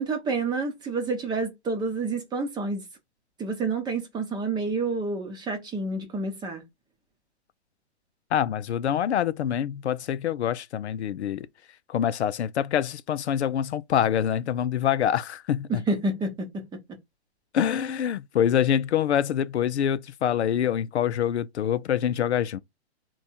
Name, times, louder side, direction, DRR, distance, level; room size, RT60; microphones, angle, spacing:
voice 1, 0.0-2.8 3.4-6.6 15.7-16.6, right 3 dB, 15° right, 0.8 m, -29 dB
voice 2, 8.3-11.5 11.9-15.8 17.5-22.6, left 9 dB, 75° left, 0.5 m, -25 dB
3.5 x 2.3 x 4.1 m
hypercardioid pair, 130°, 34 cm